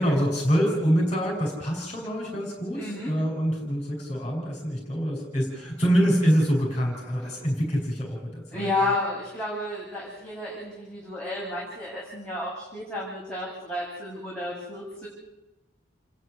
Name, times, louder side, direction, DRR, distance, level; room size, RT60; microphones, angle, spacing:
voice 1, 0.0-8.7, equal, 30° left, -1 dB, 5.4 m, -25 dB
voice 2, 2.7-3.1 8.5-15.1, left 2 dB, 5° left, -8 dB, 6.8 m, -31 dB
29.0 x 11.0 x 9.8 m, 0.99 s
head